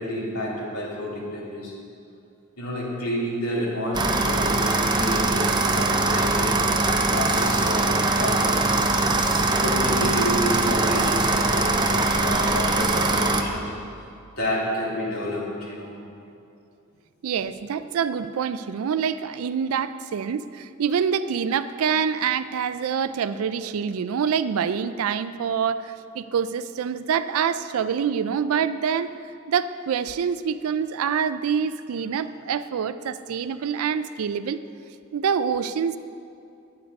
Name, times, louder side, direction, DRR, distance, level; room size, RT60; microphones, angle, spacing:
voice 1, 0.0-1.7 2.6-8.7 9.6-13.7 14.4-16.0, equal, 85° left, -5 dB, 2.7 m, -29 dB
sound 1, 3.9-13.4, right 2 dB, 20° right, 0.6 m, -22 dB
voice 2, 17.2-29.1 29.5-34.6 35.1-36.0, right 7 dB, 70° right, 13 dB, 0.4 m, -26 dB
9.4 x 9.4 x 5.2 m, 2.5 s
head